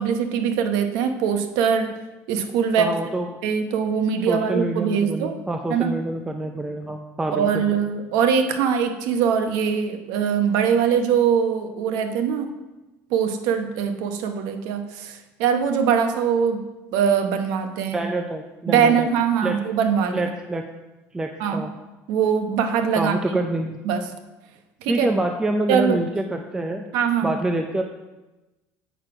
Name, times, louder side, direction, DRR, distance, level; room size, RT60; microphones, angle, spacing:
voice 1, 0.0-2.0 2.3-3.0 3.4-5.3 5.7-6.0 7.3-12.5 13.1-16.6 16.9-18.0 18.7-20.3 21.4-21.7 22.1-23.1 23.8-24.0 24.8-25.1 25.7-26.0 26.9-27.3, right 7 dB, 80° right, 7 dB, 0.9 m, -22 dB
voice 2, 2.8-3.3 4.2-7.6 17.9-19.1 19.4-19.6 20.1-20.6 21.1-21.7 22.9-23.8 24.9-26.9 27.2-27.8, right 2 dB, 10° right, 4 dB, 0.4 m, -26 dB
8.0 x 6.2 x 4.8 m, 1.1 s
cardioid pair, 150°, 6 cm